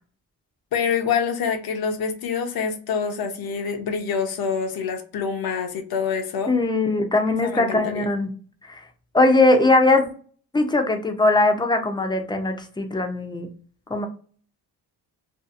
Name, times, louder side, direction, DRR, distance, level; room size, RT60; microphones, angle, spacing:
voice 1, 0.7-6.5 7.4-8.1, left 6 dB, 65° left, 4 dB, 0.7 m, -26 dB
voice 2, 6.5-8.3 8.7-8.8 9.1-10.1 10.5-13.5 13.9-14.1, left 2 dB, 10° left, 5 dB, 0.5 m, -20 dB
2.7 x 2.4 x 2.3 m, 0.42 s
cardioid pair, 95°, 39 cm